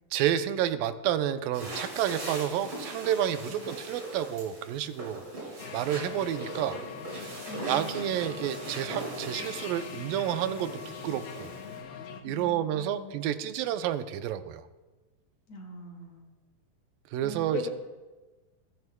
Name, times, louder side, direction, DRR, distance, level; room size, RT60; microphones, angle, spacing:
voice 1, 0.1-5.2 5.7-6.8 7.2-7.4 7.7-11.5 12.2-14.6 17.1-17.7, right 11 dB, 85° right, 10 dB, 2.3 m, -30 dB
sound 1, 1.5-11.8, right 1 dB, 40° right, 5.8 m, -41 dB
sound 2, 5.6-12.2, left 7 dB, 90° left, 2.8 m, -42 dB
voice 2, 7.5-8.2 12.2-13.1 15.5-16.3 17.2-17.7, left 3 dB, 55° left, 1 dB, 2.8 m, -41 dB
20.5 x 14.0 x 2.2 m, 1.2 s
omnidirectional pair, 3.9 m